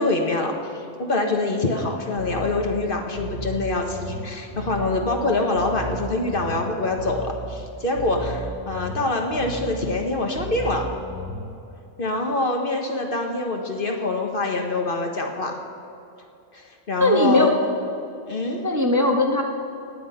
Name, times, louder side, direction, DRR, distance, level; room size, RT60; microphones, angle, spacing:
voice 1, 0.0-10.9 12.0-15.6 16.5-17.5 18.3-18.6, left 2 dB, 45° left, 3 dB, 1.4 m, -25 dB
Bass guitar, 2.1-11.6, right 2 dB, 55° right, 2.1 m, -35 dB
voice 2, 17.0-17.5 18.6-19.4, left 1 dB, 15° right, 1 dB, 1.0 m, -19 dB
18.5 x 8.6 x 5.6 m, 2.7 s
omnidirectional pair, 1.3 m